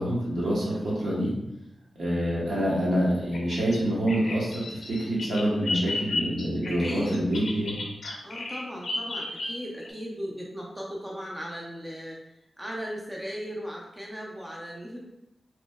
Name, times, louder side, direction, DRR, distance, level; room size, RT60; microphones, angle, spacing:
voice 1, 0.0-1.3 1.9-7.8, equal, 75° right, -6 dB, 1.0 m, -26 dB
Bird vocalization bird call bird song, 3.3-9.9, left 2 dB, 70° left, 0.4 m, -34 dB
voice 2, 6.6-7.2 8.2-12.2 12.6-15.0, equal, 5° right, -3 dB, 0.4 m, -37 dB
2.9 x 2.6 x 2.2 m, 0.88 s
wide cardioid pair, 170°, 0 cm